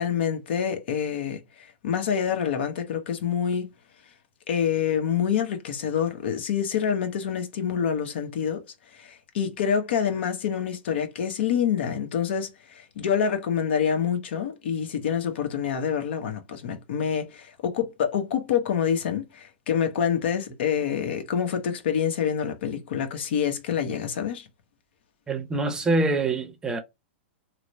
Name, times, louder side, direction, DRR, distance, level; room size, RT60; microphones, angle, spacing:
voice 1, 0.0-1.4 1.8-3.7 4.5-8.6 9.0-24.4, left 8 dB, 65° left, 0.9 m, -26 dB
voice 2, 25.3-26.8, right 2 dB, 10° right, 0.6 m, -25 dB
3.0 x 2.0 x 3.9 m
hypercardioid pair, 130°, 6 cm